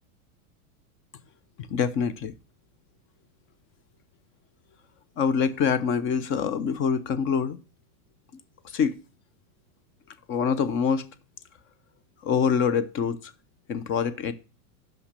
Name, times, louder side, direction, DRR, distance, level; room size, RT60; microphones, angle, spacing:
voice 1, 1.7-2.3 5.2-7.6 8.7-9.0 10.3-11.1 12.2-13.3 13.7-14.3, left 6 dB, 30° left, 0.5 m, -25 dB
5.8 x 5.2 x 6.6 m
supercardioid pair, 125°, 45 cm